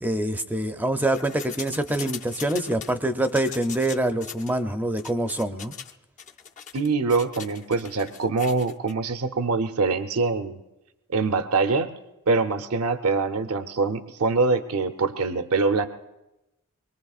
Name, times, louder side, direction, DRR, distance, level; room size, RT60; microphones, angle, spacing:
voice 1, 0.0-5.7, right 1 dB, 10° right, 7 dB, 0.5 m, -25 dB
sound 1, 1.0-2.9 3.3-4.6 5.0-5.9 6.2-8.9, left 7 dB, 35° left, 0.5 m, -40 dB
voice 2, 6.7-10.6 11.1-11.9 12.3-15.9, right 4 dB, 75° right, 8 dB, 0.7 m, -24 dB
24.0 x 22.0 x 2.4 m, 0.97 s
head